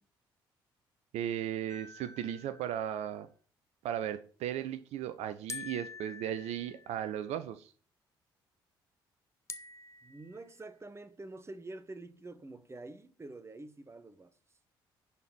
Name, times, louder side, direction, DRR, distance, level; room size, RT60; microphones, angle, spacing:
voice 1, 1.1-3.3 3.8-7.7, right 10 dB, 65° right, 0.6 m, -36 dB
sound 1, 1.7-3.2 5.5-7.2 9.5-10.6, left 4 dB, 25° left, 0.9 m, -47 dB
voice 2, 10.0-14.3, right 2 dB, 20° right, 1.2 m, -47 dB
11.0 x 4.4 x 6.0 m
hypercardioid pair, 45°, 12 cm